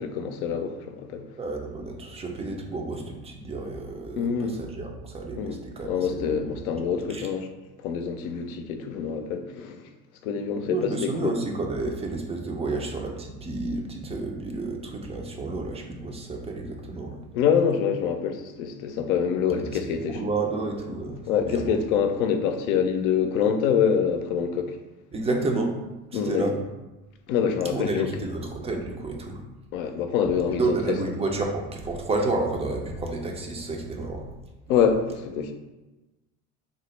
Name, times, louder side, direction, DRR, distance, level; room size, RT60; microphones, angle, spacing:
voice 1, 0.0-1.2 4.2-4.6 5.4-5.6 5.8-7.5 7.8-9.8 10.2-11.3 17.3-20.2 21.3-24.8 26.1-26.5 27.3-28.1 29.7-31.0 34.7-35.5, left 7 dB, 70° left, 6 dB, 0.6 m, -25 dB
voice 2, 1.4-6.6 7.1-7.3 10.6-17.2 19.5-19.6 20.0-21.8 25.1-25.7 26.1-26.5 27.7-29.4 30.5-34.2, right 3 dB, 15° right, 2 dB, 0.4 m, -30 dB
3.8 x 2.0 x 3.1 m, 1.1 s
hypercardioid pair, 85°, 43 cm